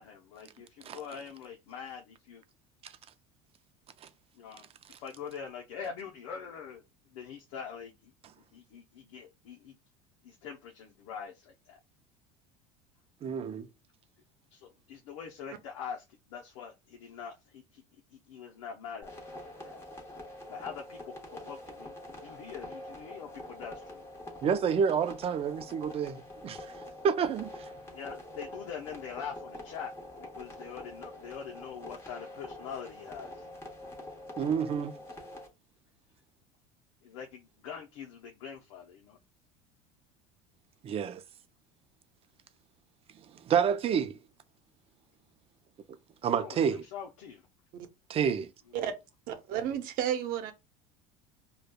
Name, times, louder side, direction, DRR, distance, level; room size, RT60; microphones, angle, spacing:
voice 1, 0.0-2.4 4.3-6.8 7.1-8.1 8.5-9.8 10.2-11.8 14.5-17.8 18.1-19.8 20.5-24.0 27.9-33.5 37.0-39.2 46.4-47.5, left 7 dB, 80° left, 0.6 m, -44 dB
voice 2, 13.2-13.7 24.4-26.6 27.0-27.7 34.4-34.9 40.8-41.2 43.3-44.2 46.2-46.8 48.1-48.5, right 7 dB, 35° right, 0.5 m, -29 dB
sound 1, 19.0-35.5, left 1 dB, 15° left, 1.1 m, -45 dB
voice 3, 49.3-50.5, right 10 dB, 60° right, 0.8 m, -32 dB
4.9 x 2.2 x 2.2 m
supercardioid pair, 100°, 16 cm